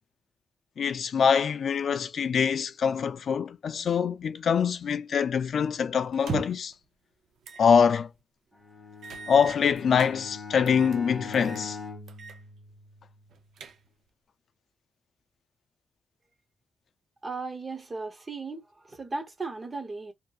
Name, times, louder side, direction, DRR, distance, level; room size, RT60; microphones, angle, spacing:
voice 1, 0.8-6.7 7.6-8.1 9.3-11.8, left 7 dB, 55° left, 0.3 m, -24 dB
sound 1, 6.1-6.7 7.4-7.7 8.1-8.2 9.0-10.1 10.7-11.0 11.3-11.7 12.1-12.4 12.7-12.8 13.3-14.1, right 6 dB, 80° right, 0.5 m, -39 dB
Bowed string instrument, 8.5-13.2, left 4 dB, ahead, 0.8 m, -42 dB
voice 2, 17.2-18.6 18.9-20.1, right 3 dB, 25° right, 0.7 m, -36 dB
2.7 x 2.4 x 2.3 m
wide cardioid pair, 165°, 0 cm